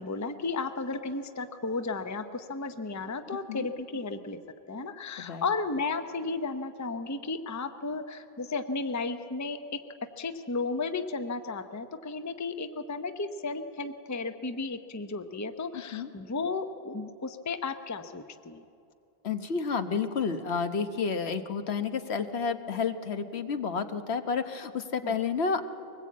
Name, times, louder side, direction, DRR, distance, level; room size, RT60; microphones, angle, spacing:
voice 1, 0.0-4.4 4.7-9.8 10.2-18.6 25.0-25.2, left 3 dB, 20° left, 8 dB, 0.6 m, -34 dB
voice 2, 15.7-16.1 19.2-25.6, left 5 dB, 90° left, 8 dB, 1.3 m, -30 dB
23.0 x 20.0 x 8.5 m, 2.6 s
omnidirectional pair, 1.0 m